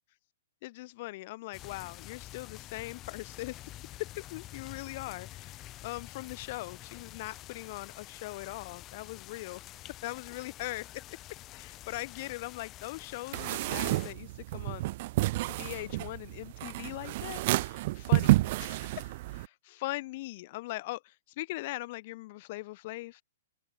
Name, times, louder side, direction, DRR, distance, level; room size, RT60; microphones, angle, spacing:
voice 1, 0.6-3.6 4.0-9.6 10.0-11.0 11.5-14.9 15.5-23.2, left 19 dB, 45° left, 1.2 m, -40 dB
sound 1, 1.5-14.1, left 15 dB, 30° left, 4.7 m, -48 dB
sound 2, 13.3-19.5, right 18 dB, 50° right, 0.5 m, -30 dB
open air
hypercardioid pair, 120°, 0 cm